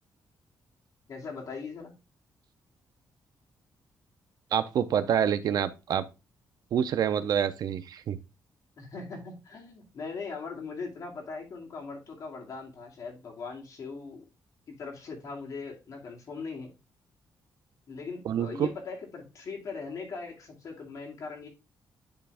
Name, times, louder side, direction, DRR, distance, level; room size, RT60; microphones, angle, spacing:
voice 1, 1.1-1.9 8.8-14.2 14.8-16.7 17.9-21.5, left 4 dB, 50° left, 2.3 m, -40 dB
voice 2, 4.5-6.0 6.7-8.2 18.2-18.7, right 9 dB, 60° right, 0.6 m, -27 dB
9.9 x 3.5 x 3.4 m
wide cardioid pair, 170°, 8 cm